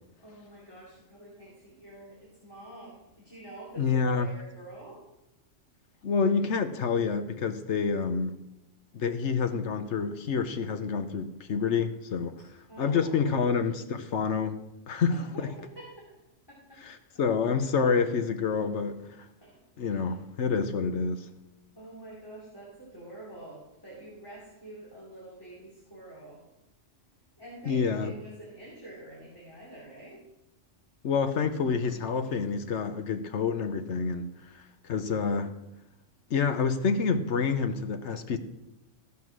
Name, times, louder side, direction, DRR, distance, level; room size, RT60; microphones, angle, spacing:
voice 1, 0.2-5.0 12.7-13.4 15.1-16.8 17.1-17.2 19.4-19.5 20.0-20.2 20.4-20.5 21.7-26.4 27.4-30.2, right 1 dB, 20° left, 3.1 m, -47 dB
voice 2, 3.8-4.3 6.0-8.4 8.9-12.3 12.8-14.6 14.9-15.5 16.8-19.1 19.8-21.3 27.7-28.1 31.0-34.3 34.8-35.5 36.3-38.4, left 5 dB, 65° left, 1.2 m, -28 dB
15.0 x 5.9 x 6.1 m
omnidirectional pair, 1.3 m